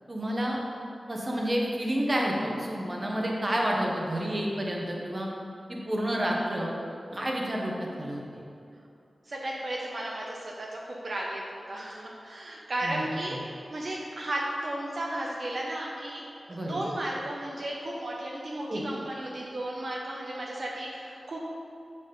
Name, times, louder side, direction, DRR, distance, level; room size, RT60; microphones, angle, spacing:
voice 1, 0.1-0.6 1.1-5.3 5.7-6.7 7.1-8.2 12.8-13.0 13.3-13.4 16.5-16.8 18.7-18.8, equal, 30° right, -2 dB, 1.0 m, -29 dB
voice 2, 9.3-11.4 11.7-16.2 16.5-21.4, right 1 dB, 55° right, -3 dB, 0.7 m, -34 dB
7.2 x 4.1 x 5.2 m, 2.6 s
wide cardioid pair, 105°, 0 cm